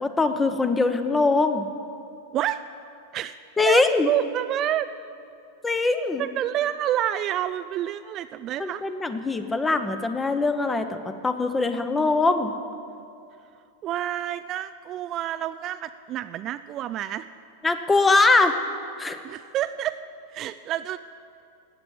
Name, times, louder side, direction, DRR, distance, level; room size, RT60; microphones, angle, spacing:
voice 1, 0.0-1.7 3.6-4.1 5.6-6.3 8.6-12.5 17.6-18.5 19.0-19.2, left 3 dB, 10° left, 9 dB, 1.0 m, -22 dB
voice 2, 2.3-2.6 3.1-3.4 3.6-4.9 6.2-8.8 13.8-17.3 19.2-20.0 20.3-21.0, right 12 dB, 35° right, 11 dB, 0.4 m, -28 dB
16.0 x 9.1 x 9.9 m, 2.6 s
figure-of-eight pair, 90°, 0 cm